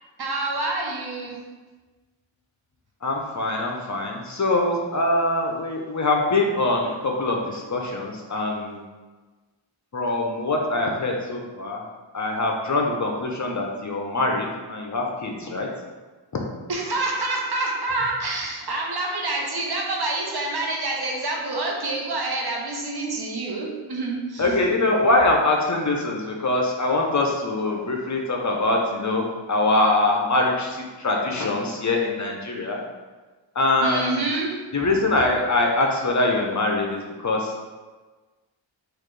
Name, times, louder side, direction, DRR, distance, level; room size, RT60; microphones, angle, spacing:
voice 1, 0.2-1.4 16.7-24.4 33.8-34.5, right 2 dB, 55° right, -1 dB, 0.8 m, -27 dB
voice 2, 3.0-8.8 9.9-11.8 12.1-15.7 24.4-32.8 33.5-34.2 34.7-37.6, left 2 dB, 40° left, 0 dB, 0.6 m, -23 dB
3.9 x 2.5 x 3.2 m, 1.3 s
cardioid pair, 50°, 47 cm